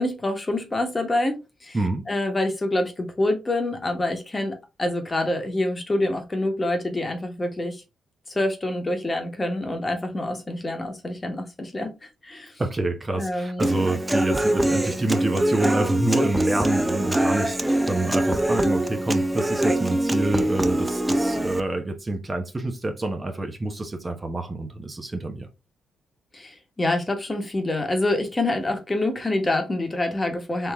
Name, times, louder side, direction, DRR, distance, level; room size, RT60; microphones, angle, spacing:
voice 1, 0.0-1.8 2.1-7.8 8.3-12.5 13.1-13.7 26.3-30.7, left 1 dB, 25° left, 1.2 m, -26 dB
voice 2, 1.7-2.1 12.6-25.5, right 2 dB, 25° right, 0.9 m, -27 dB
Human voice / Acoustic guitar, 13.6-21.6, right 1 dB, 10° right, 0.5 m, -23 dB
3.5 x 3.0 x 3.4 m
supercardioid pair, 65°, 0 cm